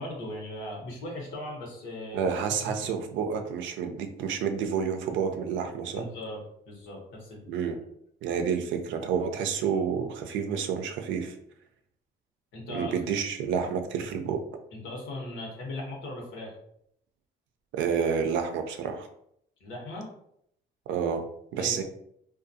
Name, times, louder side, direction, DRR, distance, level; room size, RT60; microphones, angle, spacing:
voice 1, 0.0-2.3 2.6-2.9 5.9-7.8 12.5-12.9 14.7-16.5 19.6-20.1 21.6-21.8, left 1 dB, 85° left, -1 dB, 0.9 m, -38 dB
voice 2, 2.1-6.1 7.5-7.8 8.2-11.3 12.7-14.4 17.7-19.1 20.9-21.2 21.5-21.8, right 6 dB, 80° right, 6 dB, 0.4 m, -29 dB
2.4 x 2.2 x 2.6 m, 0.72 s
cardioid pair, 75°, 19 cm